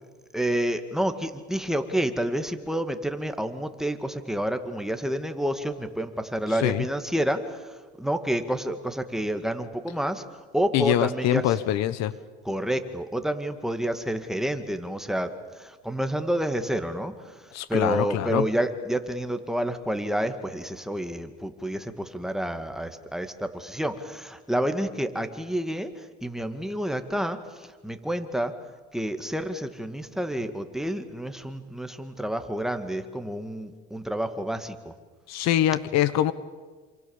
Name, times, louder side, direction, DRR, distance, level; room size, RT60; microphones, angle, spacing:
voice 1, 0.3-7.4 8.0-10.2 10.5-11.6 12.5-15.3 15.9-17.1 17.7-25.9 26.2-27.4 27.8-28.5 28.9-34.7, right 1 dB, ahead, 7 dB, 2.1 m, -29 dB
voice 2, 10.7-12.1 17.5-18.5 35.3-36.3, left 12 dB, 60° left, 16 dB, 1.2 m, -24 dB
28.0 x 27.0 x 7.3 m, 1.4 s
supercardioid pair, 110°, 30 cm